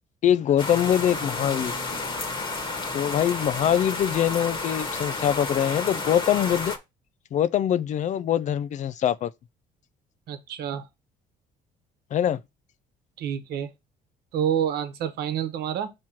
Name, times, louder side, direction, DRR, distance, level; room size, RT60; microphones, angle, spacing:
voice 1, 0.2-1.7 2.9-6.7 7.3-9.3 12.1-12.4, left 10 dB, 45° left, 0.4 m, -23 dB
sound 1, 0.6-6.8, left 3 dB, 30° left, 1.3 m, -31 dB
voice 2, 10.3-10.9 13.2-13.7 14.3-15.9, right 9 dB, 70° right, 1.1 m, -28 dB
6.1 x 3.1 x 5.7 m
cardioid pair, 110°, 17 cm